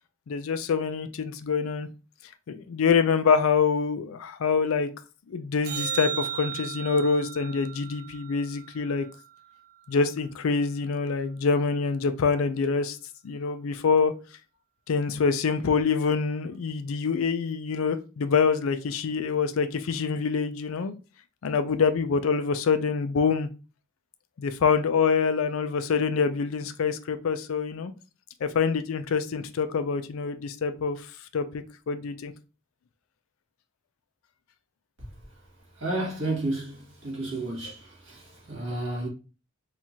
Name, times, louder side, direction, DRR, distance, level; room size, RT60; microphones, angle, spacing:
voice 1, 0.3-1.9 2.5-4.9 5.3-9.1 9.9-13.0 13.2-14.1 14.9-20.9 21.4-23.5 24.4-27.9 28.4-31.1 31.3-32.3, left 5 dB, 75° left, 0.4 m, -25 dB
sound 1, 5.6-10.1 16.7-16.8, right 8 dB, 50° right, 0.6 m, -36 dB
voice 2, 35.8-39.1, right 2 dB, 65° right, 2.0 m, -32 dB
4.4 x 2.4 x 2.7 m
head